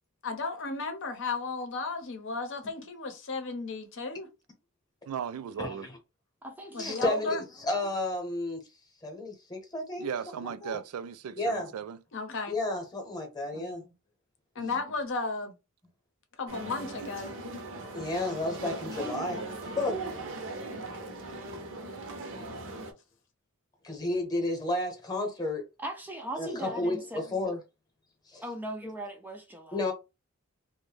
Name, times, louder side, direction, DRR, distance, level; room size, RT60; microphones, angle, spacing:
voice 1, 0.2-4.3 6.7-7.4 12.1-12.5 14.5-15.5 16.4-17.3, left 3 dB, 60° left, 0.7 m, -34 dB
voice 2, 5.1-5.9 10.0-12.0 14.6-14.8, right 7 dB, 90° right, 0.3 m, -37 dB
voice 3, 5.6-6.0 6.8-8.6 9.0-10.1 10.4-10.8 11.4-11.7 12.5-13.8 17.9-20.0 23.8-25.6 26.4-27.6 28.3-28.4 29.7-29.9, left 2 dB, 20° left, 0.9 m, -32 dB
voice 4, 6.4-7.4 13.5-13.7 25.8-27.2 28.4-29.8, right 1 dB, 10° right, 0.3 m, -39 dB
sound 1, 16.5-22.9, right 2 dB, 60° right, 0.6 m, -39 dB
2.6 x 2.1 x 3.3 m
head